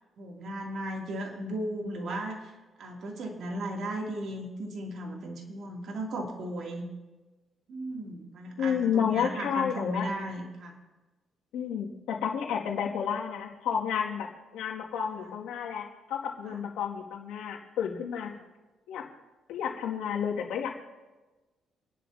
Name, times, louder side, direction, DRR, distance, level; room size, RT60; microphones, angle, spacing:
voice 1, 0.2-2.5 2.8-6.9 7.7-10.8 15.2-15.3 16.4-16.6, right 1 dB, 65° right, 0 dB, 2.9 m, -36 dB
voice 2, 8.6-10.1 11.5-14.3 14.5-18.3 18.9-19.0 19.5-20.7, left 7 dB, 90° left, -1 dB, 2.3 m, -31 dB
28.0 x 11.0 x 2.9 m, 1.2 s
cardioid pair, 90°, 0 cm